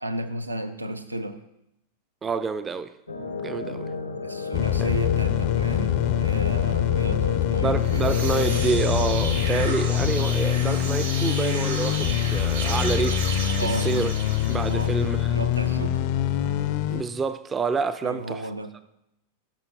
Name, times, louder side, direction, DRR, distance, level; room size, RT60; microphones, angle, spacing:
voice 1, 0.0-1.4 4.2-8.0 13.6-13.9 14.7-14.9 15.3-16.0 18.0-18.7, right 1 dB, 85° right, 0.5 m, -33 dB
voice 2, 2.2-2.9 3.4-3.9 4.8-4.9 7.6-14.1 14.5-15.3 16.9-18.5, right 5 dB, 20° right, 0.3 m, -28 dB
sound 1, 3.1-9.5, left 4 dB, 85° left, 0.7 m, -33 dB
sound 2, 4.5-17.0, left 11 dB, 45° left, 0.4 m, -24 dB
sound 3, 7.7-15.1, right 4 dB, 65° right, 1.2 m, -34 dB
12.5 x 5.5 x 2.8 m
figure-of-eight pair, 90°, 0 cm